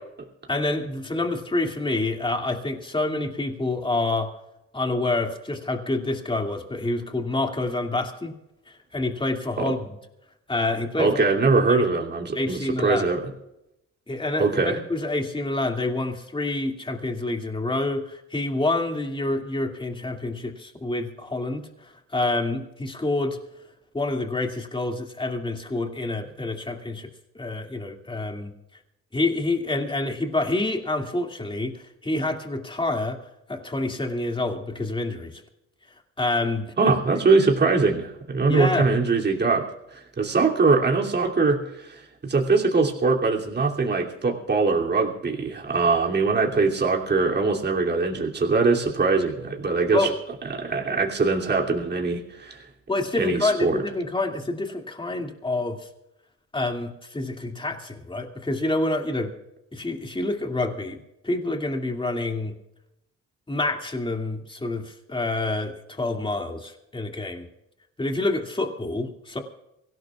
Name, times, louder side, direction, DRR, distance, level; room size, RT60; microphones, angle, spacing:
voice 1, 0.5-4.3 4.7-8.4 8.7-9.8 10.5-11.2 12.3-13.1 14.1-23.4 23.9-27.1 27.3-28.5 29.1-33.2 33.5-35.4 36.2-37.0 38.5-38.9 49.9-50.1 52.9-55.9 56.5-59.3 59.7-61.0 61.2-62.5 63.5-67.5 68.0-69.4, left 2 dB, 15° left, 3 dB, 2.4 m, -27 dB
voice 2, 11.0-13.2 14.4-14.8 36.8-39.6 39.9-50.1 50.5-52.6 53.2-53.8, right 4 dB, 35° right, -1 dB, 2.9 m, -22 dB
24.0 x 17.0 x 2.4 m, 0.87 s
cardioid pair, 90°, 30 cm